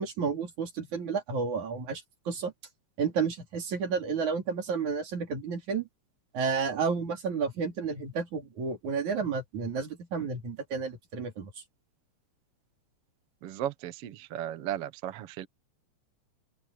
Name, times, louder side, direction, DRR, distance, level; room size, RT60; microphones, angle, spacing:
voice 1, 0.0-2.5 3.0-5.9 6.3-11.5, right 5 dB, 80° right, 4.9 m, -31 dB
voice 2, 13.4-15.5, right 11 dB, 60° right, 1.8 m, -35 dB
open air
omnidirectional pair, 3.3 m